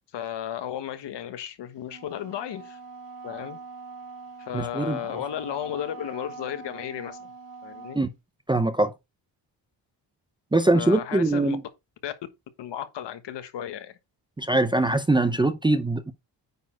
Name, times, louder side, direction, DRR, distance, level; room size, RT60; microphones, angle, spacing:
voice 1, 0.0-2.8 3.2-3.6 4.4-7.3 7.6-8.0 10.7-11.6 12.0-12.1 12.6-14.0, left 10 dB, 70° left, 1.4 m, -34 dB
Wind instrument woodwind instrument, 1.8-8.1, right 4 dB, 60° right, 3.5 m, -43 dB
voice 2, 4.5-5.0 7.9-8.1 8.5-8.9 10.5-11.6 14.4-16.1, right 2 dB, 10° right, 0.5 m, -22 dB
9.5 x 4.1 x 4.4 m
cardioid pair, 140°, 44 cm